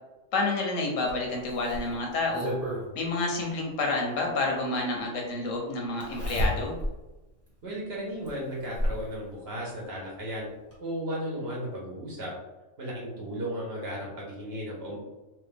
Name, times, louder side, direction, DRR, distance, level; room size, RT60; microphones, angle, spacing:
voice 1, 0.3-2.5 3.0-6.7, left 2 dB, 85° left, 0 dB, 1.1 m, -29 dB
Zipper (clothing), 1.1-2.9 4.3-4.4 6.0-7.0 7.5-7.6 8.2-9.1 10.3-10.4 10.7-10.8, equal, 10° right, 1.0 m, -31 dB
voice 2, 7.6-10.5 10.8-12.3 12.8-15.0, equal, 55° right, -3 dB, 1.1 m, -35 dB
3.1 x 2.3 x 3.3 m, 1.0 s
omnidirectional pair, 1.3 m